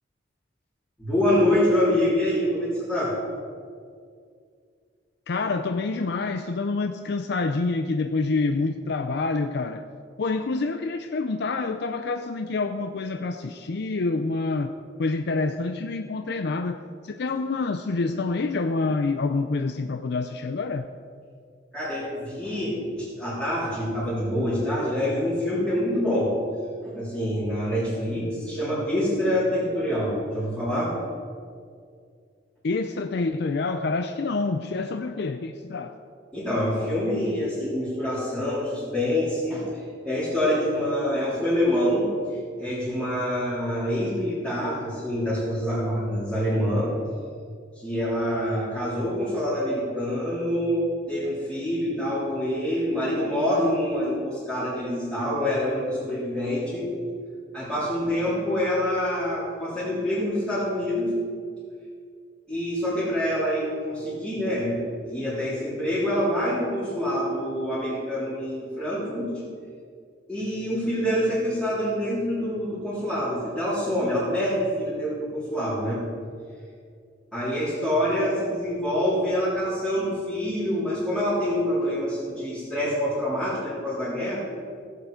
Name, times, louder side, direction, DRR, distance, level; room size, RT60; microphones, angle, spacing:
voice 1, 1.0-3.1 21.7-26.3 26.8-30.9 36.3-39.7 40.0-42.1 42.6-46.9 47.8-56.9 57.5-61.1 62.5-64.8 65.0-69.3 70.3-76.0 77.3-84.4, equal, 5° left, -12 dB, 3.6 m, -26 dB
voice 2, 5.3-9.9 10.2-14.7 15.0-16.8 17.0-20.8 32.6-36.0, left 3 dB, 65° left, 8 dB, 0.5 m, -27 dB
16.5 x 8.3 x 5.1 m, 2.2 s
head